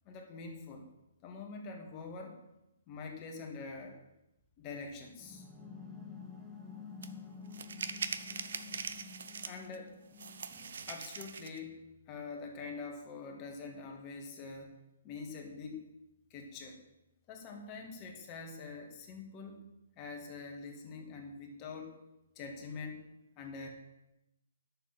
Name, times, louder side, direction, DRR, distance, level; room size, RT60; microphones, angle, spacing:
voice 1, 0.1-0.8 1.2-2.3 2.9-4.0 4.6-5.5 9.5-10.0 10.9-11.7 12.1-14.7 15.0-15.8 16.3-16.8 17.3-19.6 20.0-22.0 22.4-23.0 23.4-23.7, left 4 dB, 25° left, 2 dB, 2.0 m, -45 dB
sound 1, 5.2-10.8, left 5 dB, 5° right, 1.4 m, -50 dB
sound 2, 7.0-7.1 7.5-9.8 10.2-11.6, right 6 dB, 70° right, 0.8 m, -41 dB
9.8 x 7.1 x 6.1 m, 0.90 s
hypercardioid pair, 150°, 0 cm